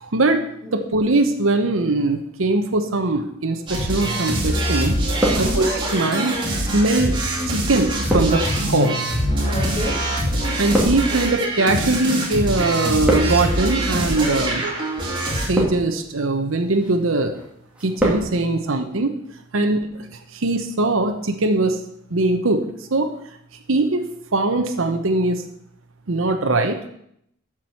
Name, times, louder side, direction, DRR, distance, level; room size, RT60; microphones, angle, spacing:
voice 1, 0.0-0.4 0.7-5.0 5.4-7.2 7.5-9.0 10.6-14.6 15.4-17.4 17.8-19.2 19.5-21.8 22.1-23.1 23.7-25.4 26.1-26.8, right 2 dB, 80° right, 6 dB, 0.9 m, -21 dB
sound 1, 3.7-15.5, right 1 dB, 25° right, 2.7 m, -23 dB
sound 2, 4.5-4.6 4.9-6.0 6.7-12.3 12.6-13.6 14.3-14.6 15.3-16.1 16.5-17.0 17.3-18.3 18.5-18.6, equal, 5° right, 2.1 m, -27 dB
voice 2, 5.3-5.6 9.4-10.1, equal, 30° left, -9 dB, 2.8 m, -30 dB
7.4 x 6.2 x 7.6 m, 0.73 s
head